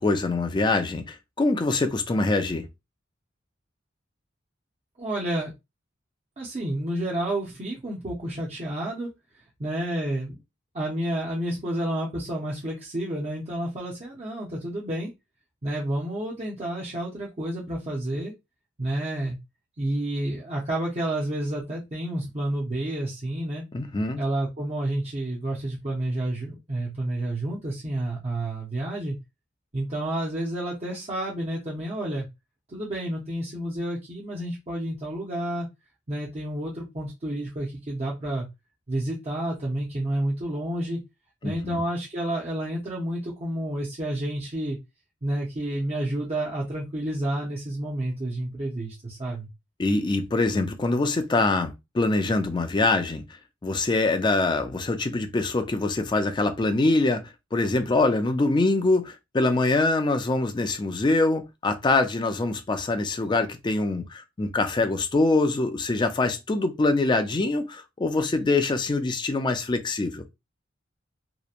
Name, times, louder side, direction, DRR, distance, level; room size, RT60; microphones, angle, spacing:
voice 1, 0.0-2.7 23.7-24.2 41.4-41.8 49.8-53.2 53.6-57.2 57.5-70.2, left 2 dB, 25° left, 0.4 m, -24 dB
voice 2, 5.0-5.5 6.4-9.1 9.6-10.4 10.7-15.1 15.6-18.3 18.8-19.4 19.8-23.6 24.2-29.2 29.7-32.3 32.7-35.7 36.1-38.5 38.9-41.0 41.4-44.8 45.2-49.5, right 1 dB, 35° right, 0.6 m, -30 dB
2.8 x 2.1 x 2.4 m
head